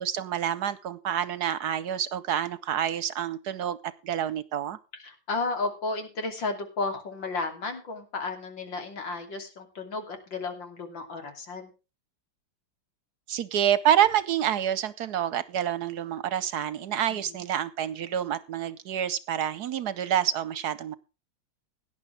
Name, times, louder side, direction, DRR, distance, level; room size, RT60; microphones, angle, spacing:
voice 1, 0.0-4.8 13.3-21.0, right 10 dB, 65° right, 17 dB, 1.2 m, -28 dB
voice 2, 5.0-11.7 17.1-17.4, left 3 dB, 80° left, 5 dB, 3.5 m, -33 dB
17.5 x 10.5 x 3.3 m, 0.31 s
omnidirectional pair, 2.0 m